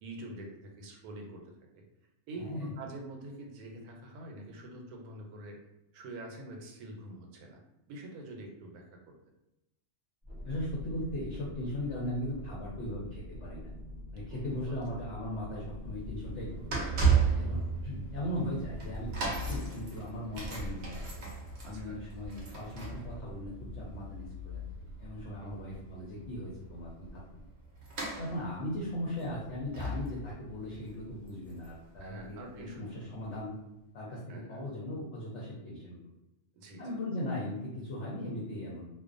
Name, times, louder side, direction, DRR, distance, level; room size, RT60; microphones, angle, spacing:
voice 1, 0.0-1.8 2.3-5.6 5.9-7.6 7.9-9.1 14.3-14.7 17.3-17.6 21.6-22.0 25.4-25.5 32.0-33.3 34.3-34.6 36.5-36.9, right 1 dB, 85° right, 1 dB, 1.1 m, -46 dB
voice 2, 2.4-2.7 10.4-13.7 14.1-16.7 17.3-21.2 21.6-27.4 28.2-33.6 33.9-36.0 36.8-38.9, left 1 dB, 65° left, -5 dB, 0.8 m, -38 dB
sound 1, 10.2-19.7, left 1 dB, 25° right, 0.5 m, -45 dB
sound 2, 15.6-32.6 33.2-33.3, right 5 dB, 60° right, 0.7 m, -35 dB
2.4 x 2.2 x 2.4 m, 0.92 s
omnidirectional pair, 1.5 m